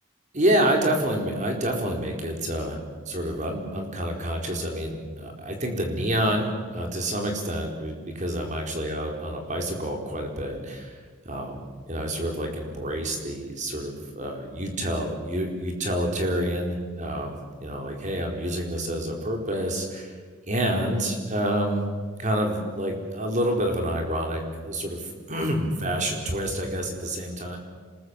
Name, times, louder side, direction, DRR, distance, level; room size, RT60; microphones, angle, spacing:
voice 1, 0.3-2.8 3.1-11.0 11.2-11.6 11.9-20.2 20.4-21.8 22.2-27.6, right 1 dB, 40° right, 2 dB, 4.6 m, -28 dB
27.0 x 21.0 x 8.3 m, 1.5 s
head